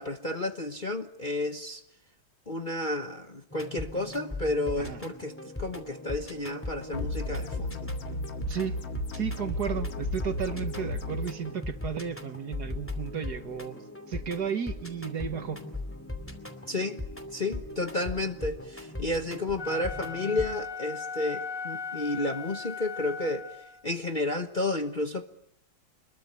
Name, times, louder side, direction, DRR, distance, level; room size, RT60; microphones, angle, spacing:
voice 1, 0.0-1.8 2.5-5.3 5.6-7.8 16.7-17.0 17.3-23.5 23.8-25.2, left 2 dB, 30° left, 1.1 m, -31 dB
sound 1, 3.5-20.5, left 2 dB, 5° left, 2.6 m, -39 dB
sound 2, 6.9-11.3, left 1 dB, 90° left, 2.6 m, -35 dB
voice 2, 8.5-8.8 9.1-13.8 14.1-15.6, right 7 dB, 60° right, 2.0 m, -33 dB
Wind instrument woodwind instrument, 19.5-23.9, left 6 dB, 65° left, 3.2 m, -38 dB
26.0 x 21.5 x 9.4 m
omnidirectional pair, 2.0 m